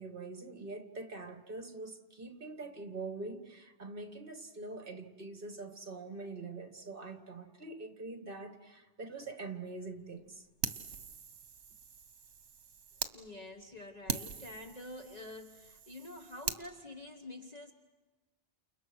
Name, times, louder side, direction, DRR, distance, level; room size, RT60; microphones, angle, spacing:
voice 1, 0.0-10.5, right 3 dB, 50° right, 2.1 m, -44 dB
Fire, 10.6-13.1 13.6-13.7 14.1-16.6, right 6 dB, 80° right, 1.4 m, -41 dB
voice 2, 13.1-17.7, left 1 dB, 35° left, 1.3 m, -47 dB
29.5 x 29.0 x 6.3 m
omnidirectional pair, 1.2 m